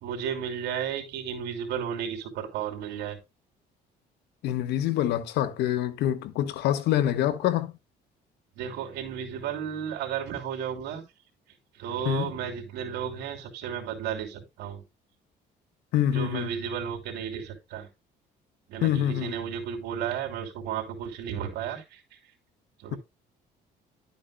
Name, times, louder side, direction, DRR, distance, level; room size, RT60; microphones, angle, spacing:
voice 1, 0.0-3.2 8.6-11.0 11.8-14.8 16.1-17.9 18.7-22.0 22.8-23.0, right 8 dB, 85° right, 3.0 m, -33 dB
voice 2, 4.4-7.7 12.0-12.3 15.9-16.5 18.8-19.4, left 11 dB, 80° left, 1.3 m, -26 dB
12.0 x 8.3 x 2.2 m
cardioid pair, 110°, 17 cm